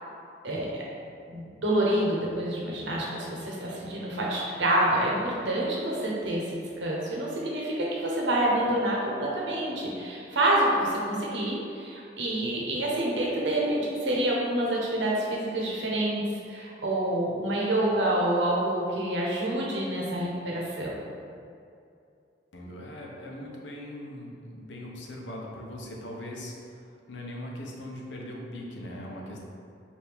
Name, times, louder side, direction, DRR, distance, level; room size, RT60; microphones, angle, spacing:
voice 1, 0.4-0.8 1.3-16.2 16.5-20.9, right 1 dB, 85° right, -4 dB, 0.9 m, -27 dB
voice 2, 22.5-29.4, left 1 dB, 90° left, -2 dB, 0.7 m, -40 dB
4.7 x 2.6 x 3.4 m, 2.5 s
head